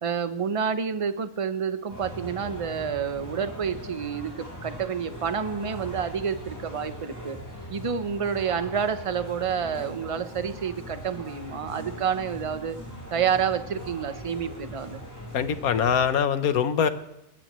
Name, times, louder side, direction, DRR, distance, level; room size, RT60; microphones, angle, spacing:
voice 1, 0.0-7.4 7.7-12.8 13.1-15.0, right 7 dB, 30° right, 10 dB, 0.7 m, -29 dB
sound 1, 1.9-16.1, equal, 10° left, 5.5 m, -40 dB
voice 2, 15.3-16.9, left 7 dB, 85° left, 11 dB, 1.4 m, -23 dB
20.5 x 15.0 x 3.1 m, 0.91 s
omnidirectional pair, 1.5 m